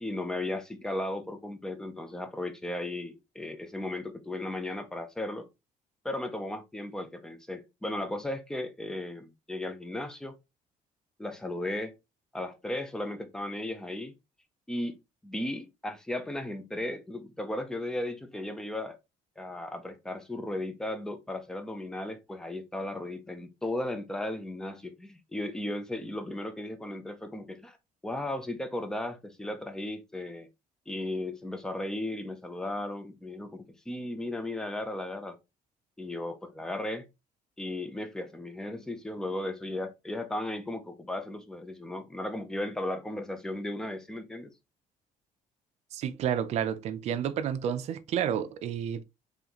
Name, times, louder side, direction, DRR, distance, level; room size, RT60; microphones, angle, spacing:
voice 1, 0.0-5.5 6.0-10.3 11.2-11.9 12.3-14.1 14.7-19.0 19.4-27.8 28.0-30.5 30.9-35.4 36.0-37.0 37.6-44.5, left 1 dB, 5° left, 0.4 m, -35 dB
voice 2, 45.9-49.0, right 9 dB, 50° right, 0.5 m, -30 dB
4.0 x 3.2 x 2.9 m
cardioid pair, 170°, 14 cm